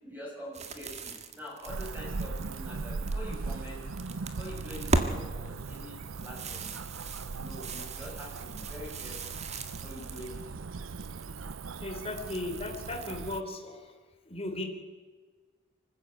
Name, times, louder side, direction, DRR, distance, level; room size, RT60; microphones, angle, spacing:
voice 1, 0.0-3.8 4.2-6.7 7.3-9.3 9.8-10.6, equal, 10° right, -3 dB, 6.0 m, -45 dB
sound 1, 0.5-3.4 3.7-5.1 5.5-10.4 10.7-11.4 12.0-13.3, right 2 dB, 35° right, 1.8 m, -37 dB
Cricket / Motor vehicle (road), 1.7-13.4, right 4 dB, 85° right, 0.6 m, -39 dB
voice 2, 11.8-13.8 14.3-14.6, left 2 dB, 30° left, 4 dB, 3.7 m, -36 dB
25.5 x 15.0 x 8.2 m, 1.4 s
head